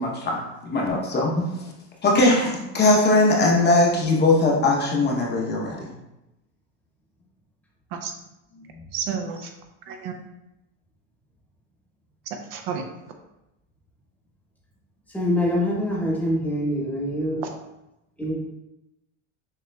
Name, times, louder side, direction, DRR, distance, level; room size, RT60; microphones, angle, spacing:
voice 1, 0.0-1.5 2.0-5.9, left 2 dB, 25° left, -2 dB, 0.8 m, -20 dB
voice 2, 8.9-9.4 9.9-10.1 12.5-12.8, right 7 dB, 60° right, 4 dB, 0.7 m, -30 dB
voice 3, 15.1-17.4 18.2-18.4, left 1 dB, 5° left, -4 dB, 1.0 m, -24 dB
6.6 x 2.8 x 2.2 m, 0.94 s
supercardioid pair, 125°, 40 cm